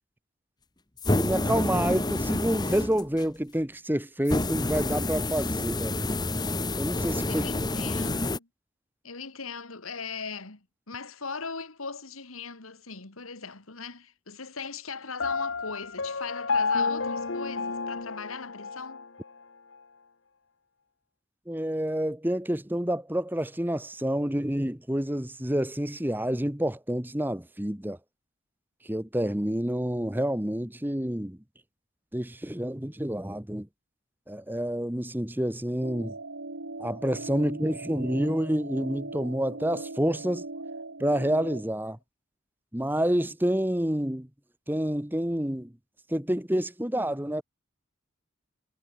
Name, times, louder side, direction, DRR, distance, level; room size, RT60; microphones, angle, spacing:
sound 1, 1.0-3.3 4.3-8.4, left 2 dB, 20° left, 1.2 m, -28 dB
voice 1, 1.1-6.0 6.6-7.4 21.5-28.0 28.8-31.4 32.1-33.7 34.3-36.2 36.8-40.4 41.0-42.0 42.7-44.3 44.7-45.7 46.1-47.4, equal, 10° right, 1.1 m, -28 dB
voice 2, 7.3-8.5 9.0-19.1, left 5 dB, 85° left, 2.5 m, -39 dB
Piano, 15.2-19.1, left 4 dB, 65° left, 1.2 m, -30 dB
sound 2, 35.8-41.6, right 2 dB, 75° right, 1.9 m, -39 dB
head